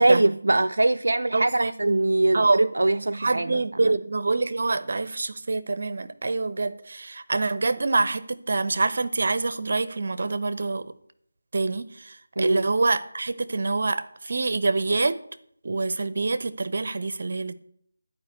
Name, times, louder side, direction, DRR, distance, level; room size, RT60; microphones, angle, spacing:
voice 1, 0.0-4.0 12.4-12.6, right 2 dB, 80° right, 0.4 m, -22 dB
voice 2, 1.3-1.9 2.3-2.6 3.2-10.9 11.5-15.2 15.6-17.5, right 3 dB, 55° right, 0.9 m, -26 dB
11.0 x 5.2 x 8.2 m
figure-of-eight pair, 170°, 0 cm